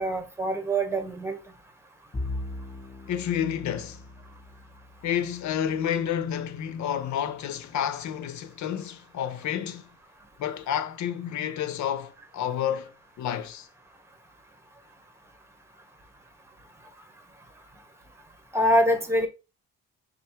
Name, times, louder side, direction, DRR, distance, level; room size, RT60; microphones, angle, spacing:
voice 1, 0.0-1.4 18.5-19.3, equal, 10° right, 1.0 m, -24 dB
Bowed string instrument, 2.1-6.7, left 2 dB, 20° left, 1.3 m, -40 dB
voice 2, 3.1-4.0 5.0-9.9 10.4-12.9 13.2-13.7, left 9 dB, 70° left, 0.8 m, -30 dB
5.3 x 2.0 x 4.4 m
cardioid pair, 90°, 30 cm